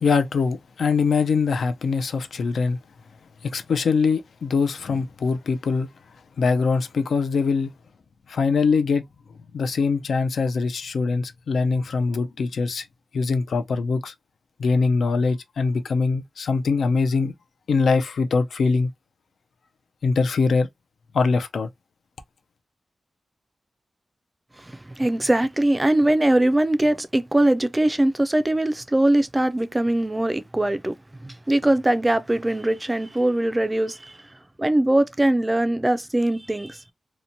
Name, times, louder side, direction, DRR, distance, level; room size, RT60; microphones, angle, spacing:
voice 1, 0.0-2.8 3.4-5.9 6.4-7.7 8.3-9.0 9.5-12.8 13.1-14.1 14.6-17.3 17.7-18.9 20.0-20.7 21.1-21.7, left 4 dB, 85° left, 0.4 m, -22 dB
voice 2, 25.0-30.9 31.2-34.1 34.6-36.8, right 1 dB, 15° right, 0.3 m, -21 dB
2.9 x 2.1 x 2.5 m
wide cardioid pair, 125°, 0 cm